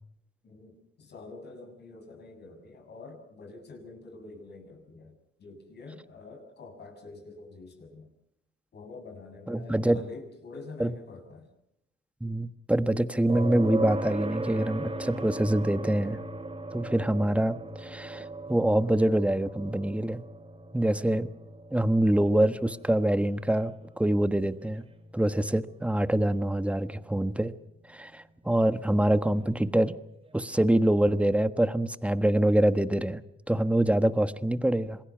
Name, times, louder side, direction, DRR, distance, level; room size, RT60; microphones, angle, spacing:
voice 1, 0.4-8.1 8.7-11.5, left 3 dB, 55° left, 4 dB, 7.3 m, -47 dB
voice 2, 9.5-10.0 10.8-10.9 12.2-16.2 16.7-20.2 20.7-21.3 21.7-24.8 25.1-27.5 27.9-29.9 30.3-33.2 33.5-35.0, right 1 dB, 5° right, 12 dB, 1.3 m, -25 dB
sound 1, 13.3-27.1 29.4-29.5, right 2 dB, 30° right, 5.1 m, -38 dB
27.5 x 21.5 x 6.0 m, 0.80 s
cardioid pair, 90°, 20 cm